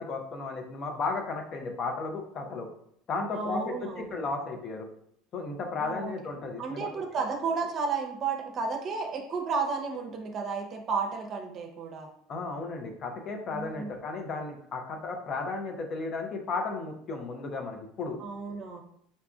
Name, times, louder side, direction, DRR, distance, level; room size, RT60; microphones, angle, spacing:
voice 1, 0.0-2.7 3.1-4.9 5.3-7.0 12.3-18.5, left 3 dB, 45° left, 4 dB, 0.6 m, -34 dB
voice 2, 3.3-4.2 5.8-6.1 6.6-12.1 13.5-14.0 18.2-18.8, right 4 dB, 45° right, 2 dB, 0.7 m, -32 dB
3.9 x 2.4 x 2.3 m, 0.69 s
hypercardioid pair, 85°, 0 cm